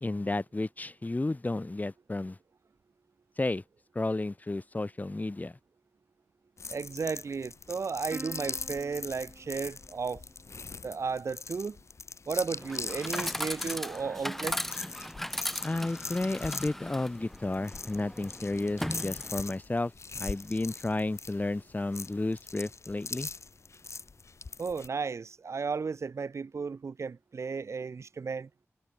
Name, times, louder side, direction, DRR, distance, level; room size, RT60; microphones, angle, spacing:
voice 1, 0.0-2.4 3.4-3.6 3.9-5.6 15.6-23.3, left 2 dB, 35° left, 1.4 m, -32 dB
sound 1, 6.6-24.9, left 4 dB, 70° left, 1.5 m, -41 dB
voice 2, 6.7-10.2 10.8-11.8 12.3-14.8 24.6-28.5, right 5 dB, 75° right, 0.5 m, -34 dB
Plucked string instrument, 8.1-10.9, right 2 dB, 40° right, 5.1 m, -48 dB
Chatter / Coin (dropping), 12.6-19.6, equal, 5° left, 1.2 m, -38 dB
wide cardioid pair, 55°, 5 cm